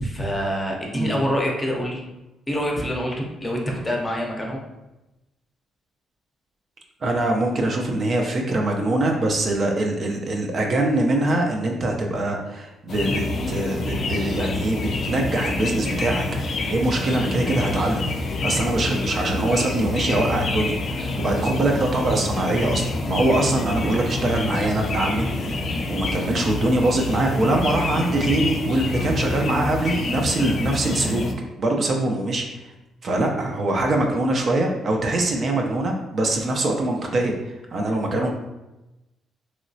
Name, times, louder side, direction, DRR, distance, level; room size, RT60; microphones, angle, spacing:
voice 1, 0.0-2.0 2.5-4.6 21.1-21.2, equal, 20° left, -1 dB, 0.7 m, -26 dB
voice 2, 7.0-18.0 18.4-25.6 25.9-31.2 31.6-32.5 33.0-38.3, right 2 dB, 45° right, 1 dB, 0.5 m, -23 dB
sound 1, 12.9-31.3, left 2 dB, 55° left, 0.4 m, -27 dB
3.0 x 2.8 x 2.7 m, 1.0 s
cardioid pair, 90°, 0 cm